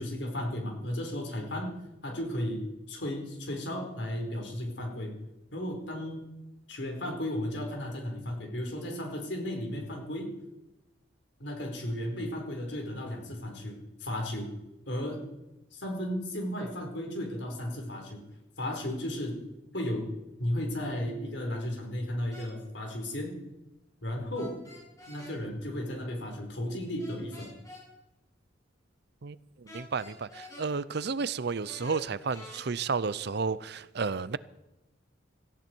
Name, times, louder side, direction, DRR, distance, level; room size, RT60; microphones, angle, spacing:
voice 1, 0.0-1.7 2.0-5.2 5.5-6.3 6.7-10.3 11.4-14.5 14.9-15.2 15.7-18.2 18.6-19.4 19.7-20.1 20.4-23.4 24.0-24.6 25.1-27.5, left 1 dB, 60° left, 4.4 m, -34 dB
sound 1, 22.3-22.5 24.3-25.4 27.0-27.8 29.7-30.7 31.6-32.6, left 2 dB, 20° left, 7.4 m, -48 dB
voice 2, 29.7-34.4, right 5 dB, 55° right, 0.6 m, -32 dB
18.0 x 15.5 x 4.6 m
head